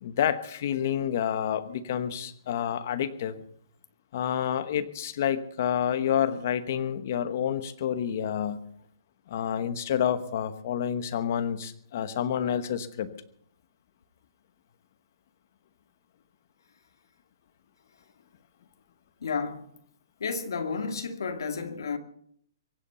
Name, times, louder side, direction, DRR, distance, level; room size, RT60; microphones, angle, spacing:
voice 1, 0.0-3.4 4.1-8.6 9.3-13.1, left 9 dB, 35° left, 1.1 m, -29 dB
voice 2, 19.2-19.7 20.2-22.0, left 5 dB, 65° left, 2.2 m, -31 dB
23.5 x 8.4 x 6.9 m
hypercardioid pair, 175°, 2 cm